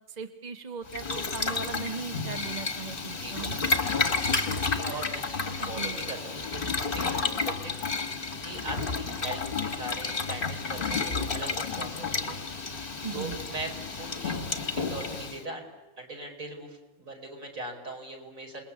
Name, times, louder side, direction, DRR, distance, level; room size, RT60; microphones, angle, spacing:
voice 1, 0.0-3.6 5.6-6.0 13.0-13.4, right 5 dB, 25° right, 6 dB, 1.2 m, -38 dB
Boiling, 0.9-15.4, left 4 dB, 30° left, 1.8 m, -31 dB
voice 2, 3.1-3.7 4.0-7.8 8.4-15.7 16.0-18.6, right 2 dB, 45° right, 2 dB, 5.0 m, -41 dB
28.5 x 20.5 x 8.4 m, 1.2 s
omnidirectional pair, 2.0 m